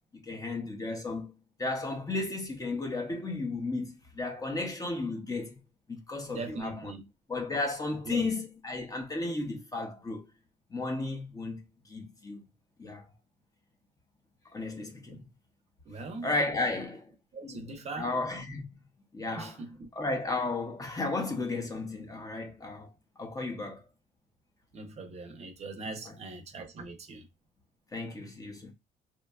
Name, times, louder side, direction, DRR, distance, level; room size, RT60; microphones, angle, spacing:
voice 1, 0.1-1.3 1.6-5.6 5.9-7.0 7.3-10.3 10.7-12.4 12.8-13.0 14.5-15.2 16.2-17.1 17.4-17.6 18.0-18.6 19.1-19.6 19.9-22.9 23.2-23.8 25.8-26.2 27.9-28.7, left 3 dB, 20° left, 0.6 m, -34 dB
voice 2, 6.3-7.0 8.1-8.3 15.9-16.3 17.3-18.1 19.4-19.9 24.7-27.3, right 3 dB, 40° right, 0.6 m, -41 dB
2.7 x 2.2 x 2.2 m
cardioid pair, 110°, 17 cm